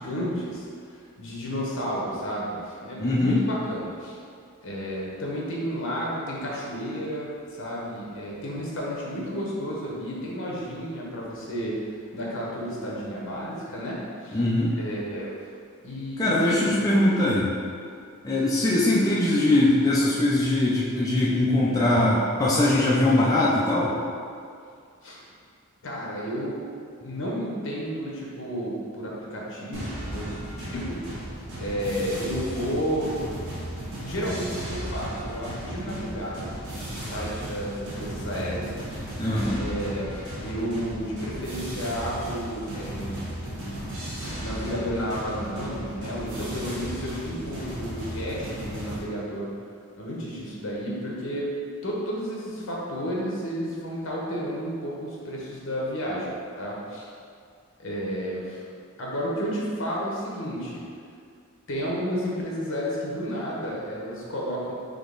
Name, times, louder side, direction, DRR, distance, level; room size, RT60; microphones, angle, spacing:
voice 1, 0.0-4.2 4.6-14.4 14.7-15.3 15.8-16.8 25.0-25.2 25.8-26.6 27.0-31.0 31.6-33.2 33.9-36.5 36.9-39.1 39.6-49.5 50.0-51.5 51.8-56.3 56.6-57.1 57.8-58.6 59.0-60.8 61.7-64.7, equal, 60° left, -4 dB, 1.0 m, -32 dB
voice 2, 3.0-3.4 14.3-14.7 16.2-17.5 18.2-23.9 39.2-39.6, left 1 dB, 15° left, -7 dB, 0.4 m, -21 dB
sound 1, 29.7-49.0, right 1 dB, 60° right, 1.1 m, -35 dB
3.8 x 3.4 x 3.8 m, 2.3 s
head